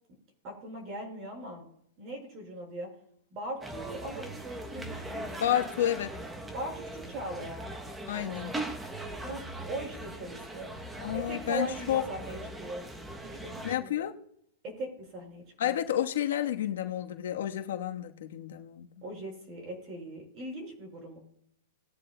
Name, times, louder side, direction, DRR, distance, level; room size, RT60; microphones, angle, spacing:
voice 1, 0.4-1.6 2.0-2.9 3.3-5.4 6.5-7.7 9.2-10.7 11.1-12.9 13.2-13.9 14.6-15.8 19.0-21.2, right 1 dB, 30° right, 2 dB, 5.0 m, -40 dB
sound 1, 3.6-13.8, right 1 dB, 10° right, 0.8 m, -40 dB
voice 2, 5.4-6.2 8.1-8.5 11.0-12.0 13.6-14.2 15.6-18.9, left 11 dB, 75° left, 5 dB, 1.2 m, -30 dB
20.0 x 9.5 x 2.2 m, 0.70 s
supercardioid pair, 160°, 0 cm